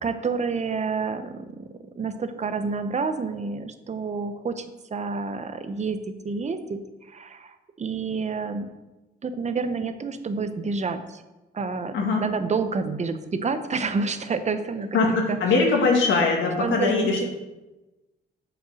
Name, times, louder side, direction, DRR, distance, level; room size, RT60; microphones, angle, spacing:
voice 1, 0.0-1.7 2.0-4.7 4.9-6.0 6.2-6.8 7.1-8.7 9.2-11.2 11.5-11.9 12.2-15.0 15.3-15.4 16.6-17.1, right 4 dB, 35° right, 9 dB, 0.9 m, -28 dB
voice 2, 14.9-17.3, left 3 dB, 70° left, 0 dB, 1.9 m, -21 dB
7.3 x 5.7 x 6.4 m, 1.1 s
cardioid pair, 90°, 20 cm